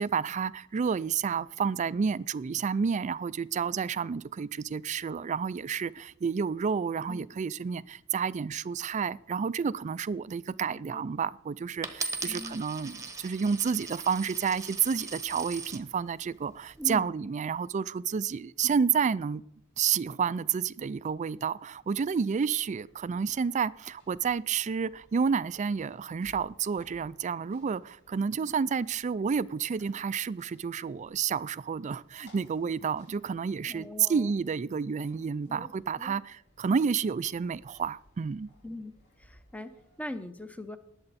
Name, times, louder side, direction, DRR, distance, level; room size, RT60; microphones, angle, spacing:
voice 1, 0.0-19.4 19.8-38.5, right 6 dB, 35° right, 0.3 m, -30 dB
voice 2, 10.7-11.1 12.3-12.7 16.8-17.1 33.7-34.3 35.5-36.2 38.6-38.9 39.2-40.8, left 1 dB, 5° left, 0.8 m, -41 dB
Coin (dropping), 11.8-15.8 16.5-17.0, right 3 dB, 15° right, 1.0 m, -39 dB
sound 1, 22.5-40.1, left 1 dB, 55° left, 6.0 m, -63 dB
19.5 x 7.9 x 4.2 m
head